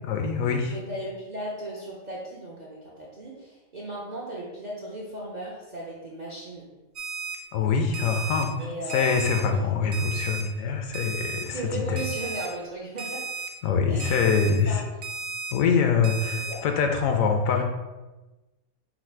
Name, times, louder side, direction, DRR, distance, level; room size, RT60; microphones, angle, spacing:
voice 1, 0.1-0.8 7.5-8.5 8.9-12.0 13.6-14.8 15.5-17.6, left 5 dB, 75° left, 4 dB, 1.0 m, -24 dB
voice 2, 0.7-6.7 8.6-9.2 9.5-9.6 11.5-13.2 13.9-14.2 14.7-14.8 16.3-16.6, right 1 dB, 50° right, -5 dB, 0.5 m, -36 dB
Alarm, 7.0-7.4 7.9-8.4 8.9-9.4 9.9-10.4 10.9-11.4 12.0-12.5 13.0-13.5 14.0-14.5 15.0-15.5 16.0-16.5, right 5 dB, 75° right, 1.0 m, -34 dB
4.0 x 2.4 x 4.4 m, 1.1 s
omnidirectional pair, 1.5 m